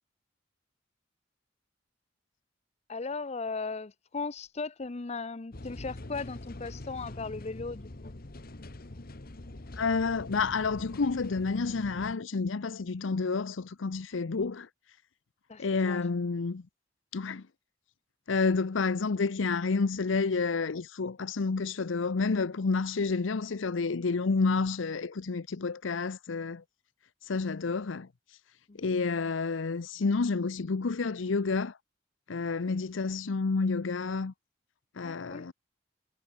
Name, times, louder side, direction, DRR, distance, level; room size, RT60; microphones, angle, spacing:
voice 1, 2.9-8.1 15.5-16.0 28.7-28.8 35.0-35.5, left 4 dB, 35° left, 0.6 m, -37 dB
sound 1, 5.5-12.1, left 1 dB, 50° left, 1.3 m, -44 dB
voice 2, 9.7-14.7 15.6-16.6 17.1-17.5 18.3-26.6 27.2-28.4 28.8-31.8 32.3-34.3 34.9-35.5, left 4 dB, 85° left, 0.7 m, -29 dB
head